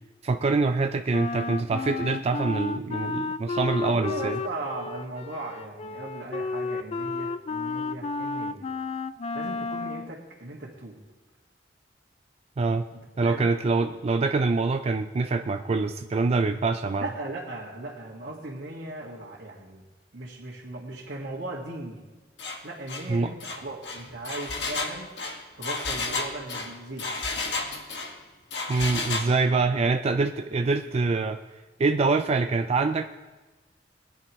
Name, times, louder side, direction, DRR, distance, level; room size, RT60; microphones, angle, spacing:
voice 1, 0.2-4.4 12.6-12.8 13.2-17.1 23.1-23.3 28.7-31.4 31.8-33.1, right 3 dB, 35° right, 7 dB, 0.4 m, -25 dB
Wind instrument woodwind instrument, 1.1-10.1, left 3 dB, 35° left, 0.3 m, -32 dB
voice 2, 3.8-8.7 9.3-11.0 12.9-13.7 17.0-19.8 20.1-22.0 22.6-25.1 25.6-27.1, right 2 dB, 70° right, -6 dB, 1.9 m, -38 dB
Engine, 22.4-22.6 22.9-23.1 23.4-28.1 28.5-29.3, left 3 dB, 70° left, 1.9 m, -32 dB
21.0 x 10.0 x 3.1 m, 1.2 s
head